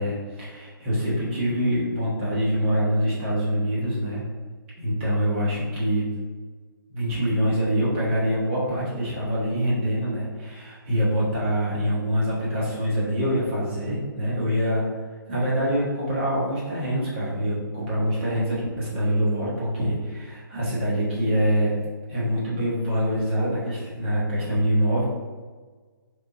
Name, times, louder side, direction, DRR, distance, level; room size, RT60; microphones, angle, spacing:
voice 1, 0.0-4.2 4.8-6.1 6.9-14.9 15.3-21.8 22.1-25.0, equal, 30° right, -8 dB, 1.2 m, -25 dB
3.5 x 2.4 x 2.5 m, 1.4 s
figure-of-eight pair, 135°, 12 cm